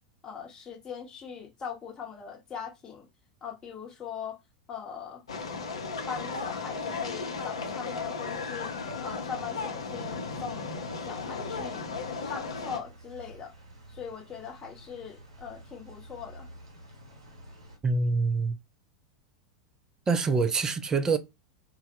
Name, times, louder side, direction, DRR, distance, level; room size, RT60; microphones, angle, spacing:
voice 1, 0.2-3.1 3.4-4.4 4.7-5.2 6.1-8.7 9.0-10.8 11.1-11.8 12.2-13.5 13.9-16.5, left 7 dB, 25° left, 0.8 m, -40 dB
sound 1, 5.3-12.8, left 4 dB, 75° left, 0.5 m, -35 dB
sound 2, 9.9-17.8, right 1 dB, 70° right, 0.8 m, -51 dB
voice 2, 17.8-18.6 20.1-21.2, right 4 dB, 20° right, 0.4 m, -25 dB
2.1 x 2.0 x 2.9 m
figure-of-eight pair, 90°, 3 cm